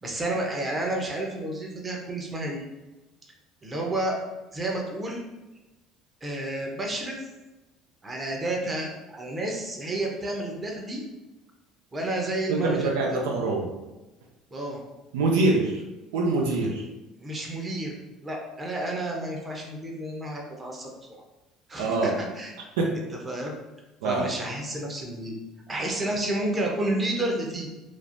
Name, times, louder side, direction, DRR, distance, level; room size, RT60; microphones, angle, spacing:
voice 1, 0.0-2.6 3.6-4.1 4.5-5.2 6.2-7.2 8.0-11.0 11.9-13.2 14.5-14.8 17.2-18.0 18.2-20.9 21.7-22.5 23.2-23.5 24.0-25.4 25.7-27.7, right 1 dB, 25° right, 0 dB, 0.7 m, -30 dB
voice 2, 12.5-13.7 15.1-15.8 16.1-16.9 21.8-22.1 22.8-23.0 24.0-24.3, right 2 dB, 85° right, -1 dB, 0.3 m, -24 dB
3.1 x 2.0 x 2.5 m, 1.1 s
hypercardioid pair, 70°, 0 cm